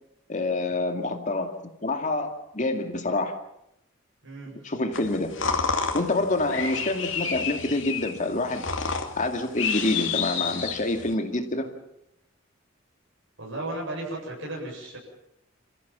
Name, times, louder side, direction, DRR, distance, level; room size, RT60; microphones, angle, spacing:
voice 1, 0.3-1.5 1.8-3.3 4.6-5.3 5.9-8.7 9.2-11.7, left 2 dB, 40° left, 5 dB, 2.3 m, -27 dB
voice 2, 4.2-4.5 13.4-15.0, right 1 dB, 75° right, -2 dB, 7.7 m, -34 dB
sound 1, 4.9-11.1, left 5 dB, 70° left, 2.6 m, -30 dB
28.5 x 15.0 x 7.4 m, 0.80 s
head